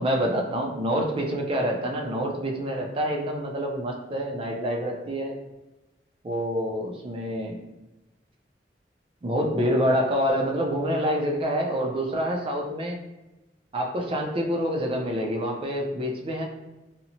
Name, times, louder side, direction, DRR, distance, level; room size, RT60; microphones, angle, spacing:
voice 1, 0.0-5.4 6.2-7.6 9.2-13.0 13.7-16.4, equal, 30° right, 1 dB, 0.4 m, -27 dB
2.9 x 2.0 x 2.6 m, 1.0 s
head